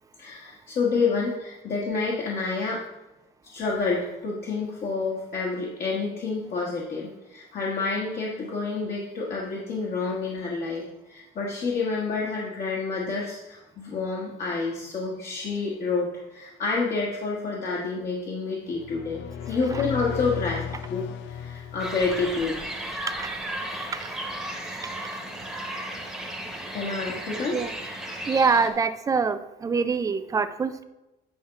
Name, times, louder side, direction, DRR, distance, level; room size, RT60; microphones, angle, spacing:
voice 1, 0.2-2.8 3.4-19.2 19.5-22.6 26.7-27.6, left 4 dB, 45° left, -3 dB, 1.4 m, -29 dB
sound 1, 18.7-22.6, left 8 dB, 75° left, 0.6 m, -35 dB
sound 2, 21.8-28.7, right 1 dB, ahead, 1.2 m, -35 dB
voice 2, 23.0-23.4 23.9-24.2 27.5-27.7 28.3-30.8, right 5 dB, 15° right, 11 dB, 0.4 m, -25 dB
9.5 x 4.3 x 5.7 m, 1.0 s
cardioid pair, 170°, 20 cm